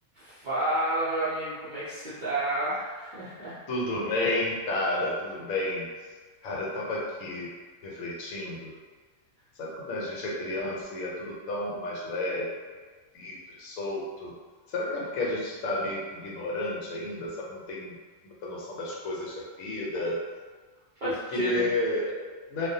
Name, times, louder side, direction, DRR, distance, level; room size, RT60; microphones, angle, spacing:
voice 1, 0.1-3.6 21.0-21.7, right 1 dB, 60° right, -11 dB, 0.5 m, -30 dB
voice 2, 3.7-5.9 6.4-7.5 7.8-8.7 9.6-12.5 13.1-14.3 14.7-17.9 18.4-20.2 21.0-22.7, left 2 dB, 85° left, -4 dB, 1.1 m, -31 dB
2.4 x 2.0 x 2.7 m, 1.4 s
omnidirectional pair, 1.4 m